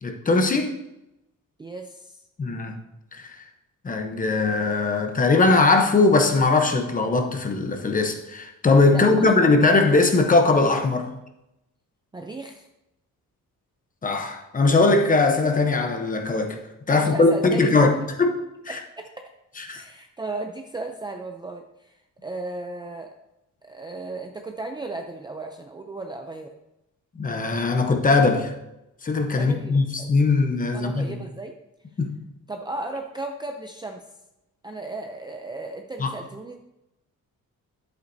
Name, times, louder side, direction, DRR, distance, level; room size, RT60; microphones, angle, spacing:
voice 1, 0.0-0.7 2.4-2.7 3.1-3.4 3.8-11.1 14.0-16.6 16.9-18.8 19.6-19.8 27.2-28.5 29.0-31.2 32.0-32.2 36.0-36.1, left 3 dB, 25° left, 5 dB, 0.9 m, -20 dB
voice 2, 1.6-2.1 8.9-9.3 12.1-12.7 16.9-17.7 18.7-19.3 19.7-21.9 22.2-23.1 23.6-26.5 29.4-30.1 30.7-31.5 32.5-34.0 34.6-36.6, right 2 dB, 15° right, 3 dB, 0.4 m, -35 dB
11.0 x 8.0 x 2.7 m, 0.90 s
wide cardioid pair, 180°, 32 cm